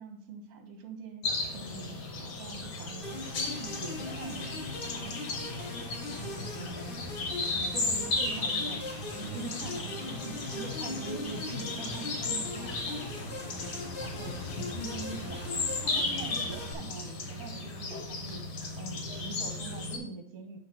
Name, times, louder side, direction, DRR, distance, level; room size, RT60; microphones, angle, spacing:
voice 1, 0.0-5.6 6.1-6.8 7.5-13.4 14.0-15.5 15.8-18.4 18.8-20.6, right 4 dB, 50° right, 5 dB, 1.3 m, -44 dB
sound 1, 1.2-20.0, left 3 dB, 55° left, 1.6 m, -35 dB
sound 2, 3.0-16.7, left 2 dB, 35° left, 0.9 m, -40 dB
8.5 x 3.3 x 6.0 m, 0.67 s
omnidirectional pair, 2.3 m